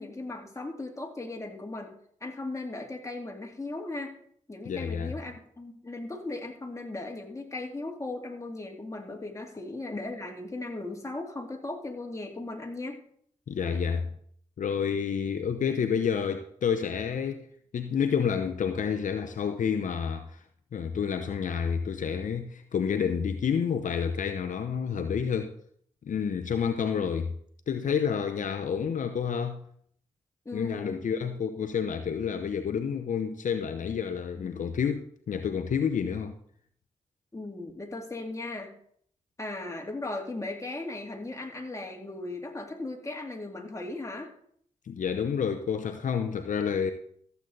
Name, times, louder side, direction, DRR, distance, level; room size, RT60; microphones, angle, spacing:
voice 1, 0.0-1.9 2.2-4.1 4.5-13.0 30.4-31.0 34.4-34.5 37.3-38.7 39.4-44.3, left 2 dB, 20° left, 2.6 m, -37 dB
voice 2, 4.7-5.1 13.5-14.1 14.6-17.5 17.7-20.4 20.7-25.5 26.0-27.3 27.7-29.6 30.5-36.3 44.8-46.9, left 7 dB, 65° left, 0.8 m, -29 dB
14.0 x 8.1 x 4.0 m
supercardioid pair, 45°, 14 cm